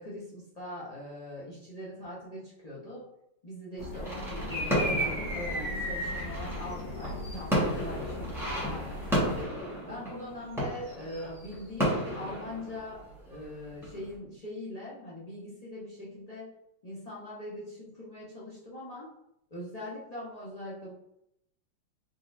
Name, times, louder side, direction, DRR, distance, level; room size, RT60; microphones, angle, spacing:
voice 1, 0.0-3.1 3.4-8.3 8.6-9.4 9.8-13.0 13.3-16.5 16.8-19.1 19.5-20.9, left 1 dB, 45° left, -8 dB, 0.5 m, -41 dB
sound 1, 3.8-9.4, left 2 dB, 60° left, 1.5 m, -39 dB
sound 2, 4.0-13.4 13.8-14.1, equal, ahead, 1.1 m, -32 dB
4.0 x 3.6 x 2.6 m, 0.79 s
omnidirectional pair, 2.3 m